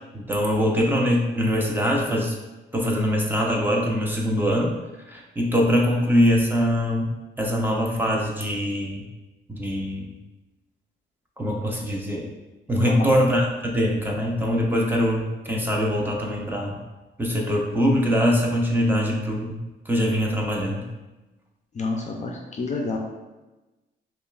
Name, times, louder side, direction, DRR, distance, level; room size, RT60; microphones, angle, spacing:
voice 1, 0.1-2.3 2.7-4.7 5.1-7.1 7.4-9.0 9.5-10.1 11.4-12.2 12.7-13.4 13.7-16.8 17.2-19.6 19.9-20.9, equal, 10° right, -2 dB, 0.7 m, -23 dB
voice 2, 21.7-23.0, left 3 dB, 35° left, 1 dB, 0.5 m, -28 dB
5.1 x 2.4 x 2.4 m, 1.1 s
cardioid pair, 90°, 20 cm